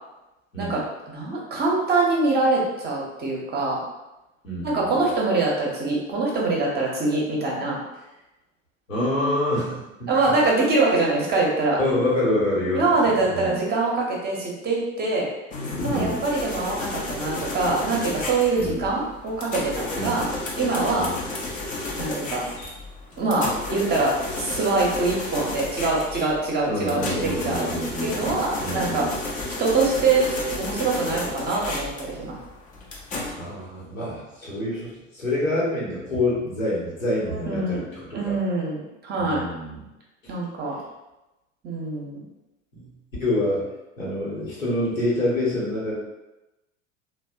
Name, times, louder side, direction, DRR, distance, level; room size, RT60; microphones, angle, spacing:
voice 1, 1.1-3.8 4.6-7.8 10.1-11.8 12.7-15.3 15.8-21.1 22.0-22.4 23.2-27.7 28.0-29.0 29.6-30.3 30.6-32.4 37.5-37.8 38.1-39.4 40.3-40.8 41.6-42.2, right 3 dB, 25° right, -3 dB, 0.6 m, -24 dB
voice 2, 4.4-5.0 8.9-10.1 11.8-13.6 15.9-16.2 18.6-18.8 19.9-20.2 20.9-21.2 26.7-29.1 33.4-38.4 39.2-39.8 40.2-40.3 42.7-42.9 43.2-43.7 44.0-46.0, left 1 dB, 85° left, -6 dB, 1.0 m, -27 dB
sound 1, 15.5-33.3, left 2 dB, 20° left, 0.4 m, -32 dB
2.7 x 2.1 x 2.3 m, 0.99 s
figure-of-eight pair, 75°, 39 cm